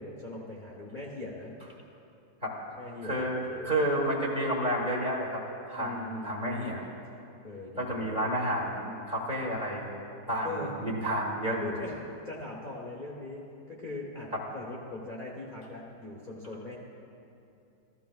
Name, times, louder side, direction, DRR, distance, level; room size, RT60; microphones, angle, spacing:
voice 1, 0.0-1.5 2.8-3.7 5.8-6.9 7.4-8.2 10.4-10.7 11.6-16.8, left 2 dB, 35° left, -4 dB, 0.8 m, -41 dB
voice 2, 3.0-5.4 5.7-6.8 7.8-9.9 10.3-11.7 14.3-14.4, right 1 dB, 30° right, -4 dB, 1.2 m, -30 dB
14.0 x 13.5 x 2.3 m, 2.6 s
omnidirectional pair, 2.1 m